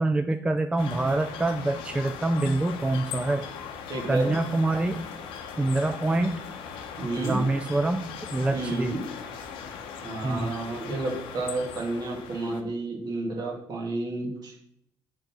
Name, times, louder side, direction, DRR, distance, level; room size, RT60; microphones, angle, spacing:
voice 1, 0.0-3.4 4.1-5.1 5.6-6.4 7.2-8.1 8.3-9.0 10.2-10.5, right 2 dB, 15° right, 7 dB, 0.4 m, -26 dB
sound 1, 0.8-12.6, left 7 dB, 80° left, 0.8 m, -39 dB
voice 2, 3.9-4.3 7.0-7.4 8.5-9.1 10.0-14.5, right 2 dB, 50° right, -1 dB, 2.0 m, -31 dB
6.6 x 3.9 x 6.0 m, 0.74 s
cardioid pair, 90°, 9 cm